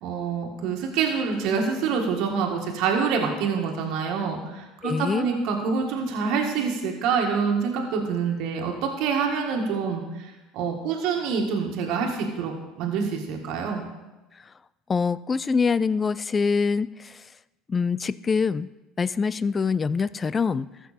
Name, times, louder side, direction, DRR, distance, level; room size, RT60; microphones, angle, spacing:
voice 1, 0.0-12.5 12.8-13.8, right 5 dB, 65° right, 1 dB, 1.7 m, -26 dB
voice 2, 4.8-5.3 14.9-17.2 17.7-18.7 19.0-20.7, left 5 dB, 25° left, 18 dB, 0.3 m, -24 dB
14.5 x 5.9 x 4.2 m, 1.1 s
supercardioid pair, 90°, 0 cm